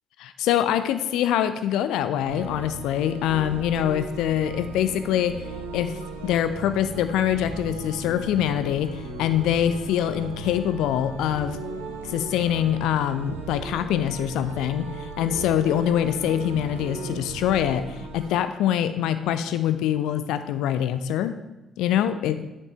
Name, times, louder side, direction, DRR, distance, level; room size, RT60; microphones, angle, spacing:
voice 1, 0.2-5.4 5.7-5.9 6.2-11.6 12.0-21.3 21.8-22.4, left 10 dB, 65° left, 10 dB, 0.3 m, -24 dB
sound 1, 2.3-18.3, right 3 dB, 85° right, 0.5 m, -37 dB
6.5 x 5.3 x 2.8 m, 0.99 s
figure-of-eight pair, 45°, 0 cm